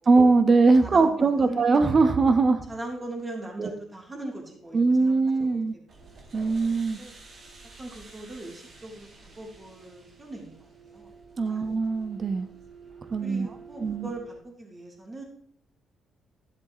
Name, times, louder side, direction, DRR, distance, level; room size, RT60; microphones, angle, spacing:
voice 1, 0.1-2.6 3.6-3.7 4.7-5.7 6.3-7.0 11.4-12.5 13.1-13.5 13.8-14.1, right 3 dB, 40° right, 9 dB, 1.1 m, -21 dB
voice 2, 0.8-1.6 2.7-5.6 6.9-7.1 7.8-9.1 9.4-11.1 11.4-11.6 13.2-15.2, right 2 dB, 25° right, -1 dB, 3.3 m, -40 dB
sound 1, 5.9-14.4, right 4 dB, 55° right, 2.0 m, -49 dB
12.5 x 7.5 x 3.1 m, 0.67 s
cardioid pair, 90°, 0 cm